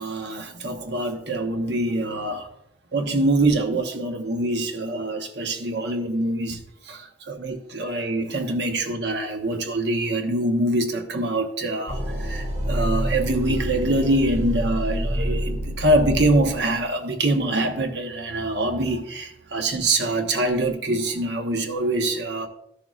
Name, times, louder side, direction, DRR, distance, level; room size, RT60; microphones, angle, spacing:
voice 1, 0.0-2.5 2.9-6.6 6.9-22.5, right 1 dB, 70° right, 1.0 m, -24 dB
sound 1, 11.9-16.8, equal, 40° right, 2.0 m, -27 dB
13.0 x 6.8 x 2.4 m
head